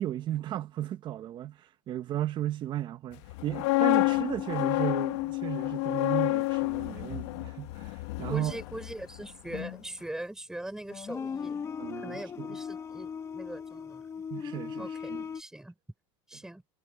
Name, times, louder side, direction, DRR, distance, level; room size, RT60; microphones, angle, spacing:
voice 1, 0.0-8.5 11.8-12.6 14.3-15.3 16.3-16.4, right 12 dB, 30° right, 1.2 m, -35 dB
sound 1, 3.3-9.2 9.5-9.8, left 23 dB, 65° left, 1.1 m, -29 dB
sound 2, 4.0-6.5 6.9-7.3 9.8-10.0 10.6-15.4, left 6 dB, 20° left, 1.3 m, -39 dB
voice 2, 8.3-11.6 12.0-14.1 14.8-15.7 16.3-16.6, right 1 dB, 5° right, 5.0 m, -41 dB
supercardioid pair, 165°, 16 cm